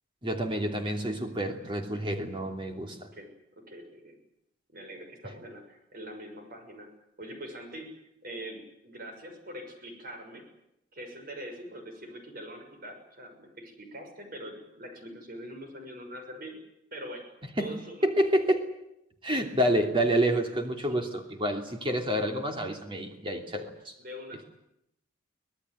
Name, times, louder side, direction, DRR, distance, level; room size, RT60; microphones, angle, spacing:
voice 1, 0.2-3.1 17.6-17.7 18.0-18.7 19.2-23.9, right 1 dB, 25° right, 4 dB, 3.0 m, -28 dB
voice 2, 3.1-4.2 4.7-6.9 7.2-7.9 8.2-10.5 10.9-16.6 16.9-17.2 17.6-18.0 20.8-21.0 24.0-24.4, equal, 45° right, 5 dB, 6.4 m, -43 dB
25.0 x 18.0 x 9.5 m, 0.82 s
head